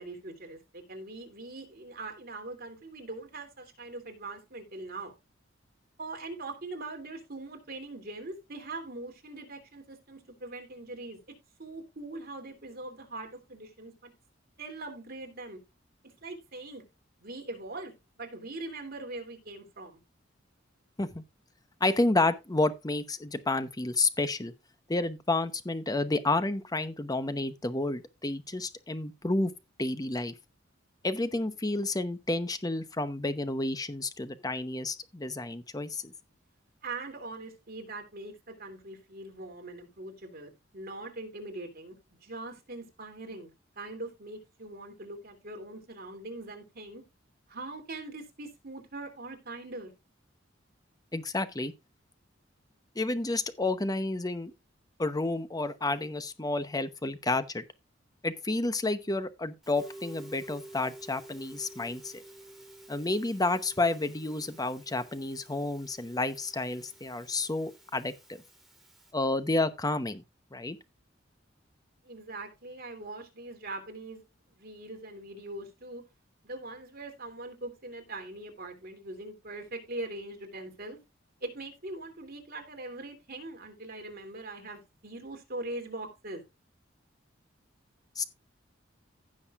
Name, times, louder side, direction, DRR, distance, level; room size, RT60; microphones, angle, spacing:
voice 1, 0.0-5.1 6.0-11.2 11.6-14.1 14.6-15.6 16.2-16.8 17.2-20.0 36.8-41.9 42.2-43.5 43.8-47.0 47.5-49.9 72.0-74.2 74.5-76.0 76.4-81.0 81.4-86.4, right 2 dB, 50° right, 2.9 m, -42 dB
voice 2, 21.8-24.5 24.9-29.5 29.8-30.3 31.0-36.1 51.1-51.7 53.0-54.5 55.0-57.6 58.2-62.2 62.9-68.4 69.1-70.2 70.5-70.8 88.2-88.3, left 2 dB, 20° left, 0.9 m, -30 dB
Musical instrument, 59.6-69.1, right 1 dB, ahead, 2.9 m, -51 dB
16.0 x 6.4 x 2.4 m
head